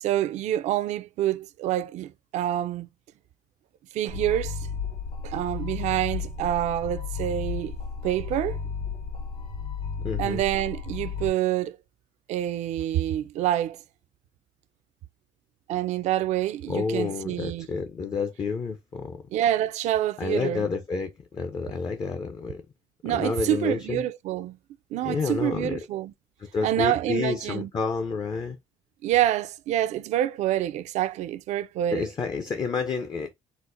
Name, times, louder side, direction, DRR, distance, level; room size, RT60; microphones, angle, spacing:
voice 1, 0.0-2.9 3.9-4.7 5.2-7.7 8.0-8.6 10.2-11.8 12.3-13.8 15.7-17.7 19.3-20.7 23.0-24.6 24.9-26.1 26.6-27.7 29.0-32.1, right 12 dB, 70° right, 0.4 m, -27 dB
sound 1, 4.1-11.3, left 5 dB, 60° left, 2.0 m, -33 dB
voice 2, 10.0-10.4 16.7-19.2 20.2-22.6 23.0-24.0 25.0-25.8 26.4-28.6 31.9-33.3, left 5 dB, 35° left, 0.5 m, -29 dB
4.0 x 2.1 x 2.4 m
cardioid pair, 110°, 12 cm